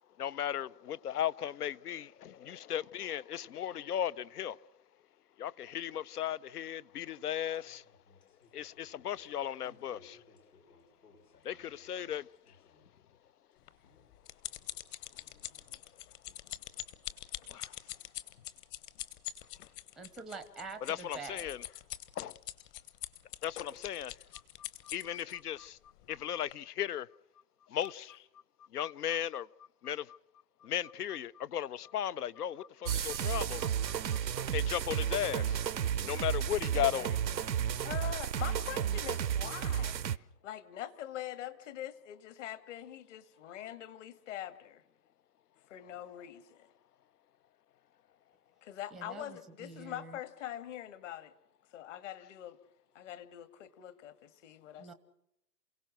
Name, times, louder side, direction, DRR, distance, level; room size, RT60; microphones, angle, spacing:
voice 1, 0.2-4.6 5.4-7.8 8.5-10.2 11.4-12.3 17.5-17.7 20.8-21.6 22.2-22.4 23.4-24.2 24.9-25.8 26.1-27.1 27.7-28.2 28.7-29.5 29.8-30.2 30.6-33.9 34.5-35.6 36.0-37.5, left 10 dB, 70° left, 0.8 m, -36 dB
sound 1, 7.3-13.0 13.3-14.4 14.6-15.8 16.8-16.9 18.1-18.2 18.8-18.9, left 4 dB, 85° left, 5.9 m, -64 dB
sound 2, 13.7-25.3 26.0-26.2 26.5-26.6, left 13 dB, 30° left, 1.2 m, -44 dB
voice 2, 20.0-21.5 48.9-50.2 54.8-54.9, right 4 dB, ahead, 0.7 m, -46 dB
sound 3, 32.9-40.2, right 9 dB, 90° right, 0.8 m, -33 dB
voice 3, 37.8-44.8 45.7-46.7 48.6-51.3 51.7-52.6 52.9-54.9, left 11 dB, 45° left, 1.9 m, -44 dB
28.5 x 17.0 x 6.3 m
hypercardioid pair, 130°, 49 cm